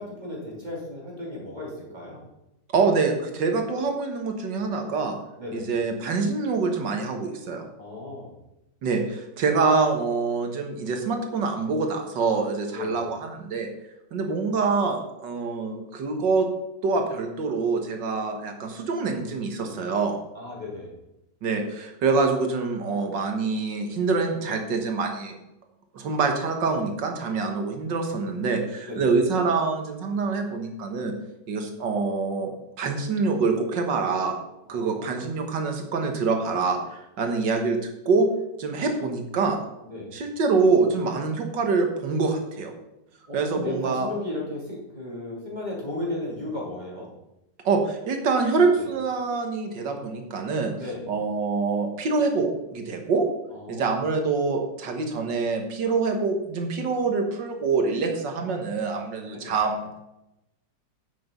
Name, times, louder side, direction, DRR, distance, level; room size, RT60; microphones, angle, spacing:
voice 1, 0.0-2.3 5.4-5.7 7.8-8.3 12.7-13.0 20.3-20.9 28.9-29.1 34.7-35.3 39.8-40.1 43.3-47.1 48.7-48.9 50.7-51.0 53.5-53.9 59.3-59.6, left 2 dB, 25° right, -3 dB, 3.3 m, -35 dB
voice 2, 2.7-5.1 5.5-7.7 8.8-13.7 14.1-16.5 16.8-20.2 21.4-25.4 25.9-31.1 31.5-32.5 32.8-34.3 34.7-37.8 38.1-38.3 38.6-39.6 40.1-42.7 43.3-44.1 47.6-50.7 51.1-53.3 53.7-59.9, right 4 dB, 90° right, 4 dB, 2.1 m, -25 dB
10.0 x 7.8 x 5.3 m, 0.91 s
omnidirectional pair, 1.9 m